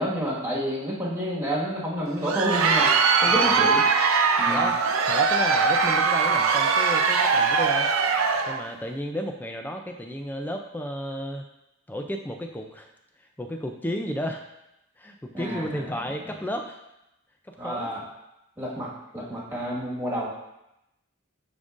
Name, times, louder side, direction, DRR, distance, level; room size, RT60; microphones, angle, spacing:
voice 1, 0.0-2.9 3.2-3.8 4.4-4.7 15.3-16.0 17.6-18.0 18.6-20.3, equal, 10° right, -7 dB, 1.6 m, -29 dB
Crowd, 2.1-8.6, right 5 dB, 70° right, 0.5 m, -21 dB
voice 2, 4.5-7.9 8.5-11.5 11.9-12.9 13.2-14.4 15.0-16.8 17.4-18.0, equal, 10° left, 3 dB, 0.4 m, -33 dB
9.9 x 3.7 x 2.5 m, 0.88 s
head